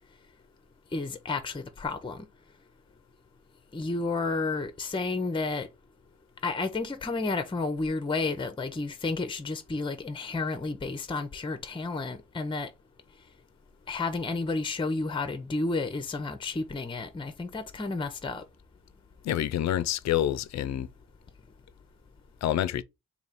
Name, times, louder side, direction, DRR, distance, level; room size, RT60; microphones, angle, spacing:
voice 1, 0.9-2.2 3.7-5.7 6.4-12.7 13.9-18.4, left 3 dB, 15° left, 0.6 m, -31 dB
voice 2, 19.2-20.9 22.4-22.8, left 11 dB, 55° left, 0.4 m, -27 dB
3.3 x 2.8 x 4.0 m
supercardioid pair, 60°, 32 cm